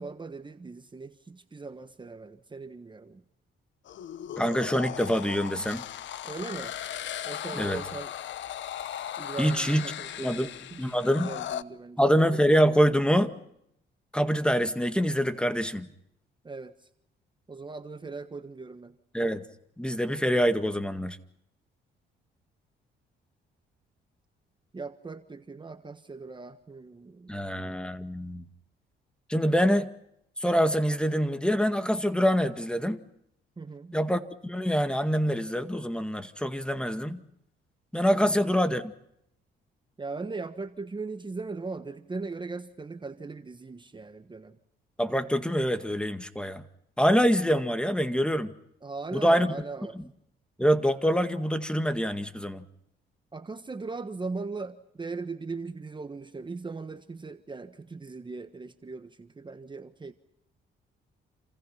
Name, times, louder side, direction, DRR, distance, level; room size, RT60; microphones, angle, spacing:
voice 1, 0.0-3.2 6.2-6.8 7.2-8.1 9.2-12.0 16.4-16.9 17.5-18.9 24.7-27.3 33.6-34.0 38.2-38.4 40.0-44.6 48.8-50.0 53.3-60.1, right 3 dB, 25° right, 9 dB, 1.4 m, -39 dB
sound 1, 3.9-11.6, left 11 dB, 70° left, 1.0 m, -37 dB
voice 2, 4.4-5.8 7.5-7.8 9.4-9.8 10.2-10.5 10.8-11.3 12.0-13.3 14.1-15.9 19.1-19.4 19.8-21.2 27.3-28.4 29.3-29.9 30.4-33.0 33.9-37.2 37.9-38.9 45.0-46.6 47.0-48.5 49.1-49.6 50.0-50.1 50.6-52.7, equal, 5° left, 10 dB, 1.9 m, -25 dB
28.5 x 27.0 x 5.9 m, 0.75 s
cardioid pair, 90°, 20 cm